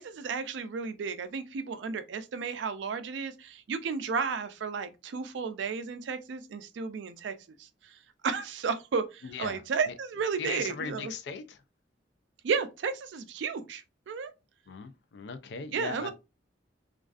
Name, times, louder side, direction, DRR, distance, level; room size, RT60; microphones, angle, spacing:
voice 1, 0.0-11.1 12.4-14.3 15.7-16.1, right 5 dB, 85° right, 0.4 m, -33 dB
voice 2, 9.2-9.6 9.9-10.0 10.4-11.6 14.7-16.1, left 5 dB, 70° left, 0.4 m, -38 dB
2.4 x 2.3 x 2.4 m
head